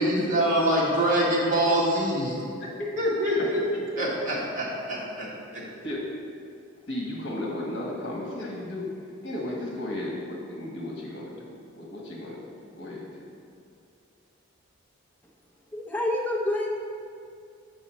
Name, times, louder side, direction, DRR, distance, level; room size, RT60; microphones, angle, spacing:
voice 1, 0.0-2.4 3.0-3.6 3.9-5.3 5.5-5.6, right 1 dB, 40° right, -6 dB, 1.6 m, -24 dB
voice 2, 2.6-2.9 3.4-3.5 5.8-6.2 6.9-8.9 9.2-11.5 11.8-13.3, left 1 dB, 55° left, -2 dB, 1.4 m, -34 dB
voice 3, 15.7-16.8, left 1 dB, 10° left, -2 dB, 0.6 m, -27 dB
7.0 x 5.3 x 4.3 m, 2.4 s
head